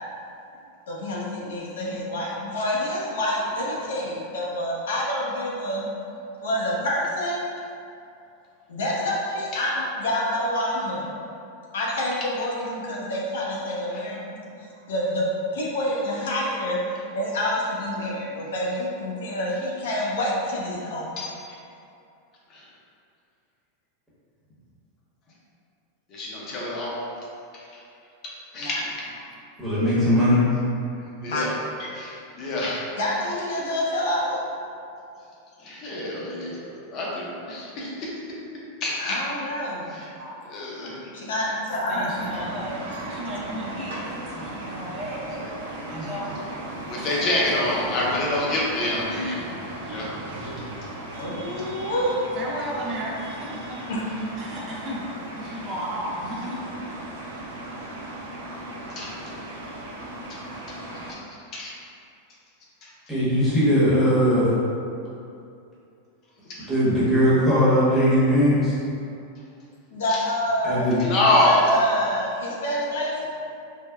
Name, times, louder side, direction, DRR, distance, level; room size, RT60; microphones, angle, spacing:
voice 1, 0.9-5.9 6.4-7.4 8.7-11.1 11.7-15.3 15.5-21.1 28.6-28.8 31.3-31.5 33.0-34.4 39.0-40.1 41.1-42.3 51.1-52.2 53.9-54.0 69.9-70.9 71.4-73.3, left 1 dB, 85° left, -4 dB, 0.6 m, -27 dB
voice 2, 26.1-27.0 27.5-27.8 28.5-28.9 31.2-31.5 31.9-32.9 35.6-38.1 38.8-39.2 39.9-40.1 40.5-41.1 46.9-49.5 49.8-50.1 50.4-50.5 55.4-55.7 58.9-59.1 61.1-61.2 61.5-61.7 62.8-62.9 66.4-66.7 71.0-71.6, left 2 dB, 35° left, -5 dB, 0.6 m, -26 dB
voice 3, 29.6-30.4 63.1-64.5 66.7-68.7 70.6-71.0, equal, 5° left, -11 dB, 0.9 m, -19 dB
voice 4, 40.1-40.4 40.8-41.0 41.7-46.4 47.0-47.6 50.4-50.5 52.4-53.8 54.4-56.7, equal, 30° right, -5 dB, 0.4 m, -34 dB
sound 1, 42.1-61.1, right 1 dB, 90° right, 0.5 m, -37 dB
3.4 x 2.1 x 2.2 m, 2.6 s
supercardioid pair, 145°, 0 cm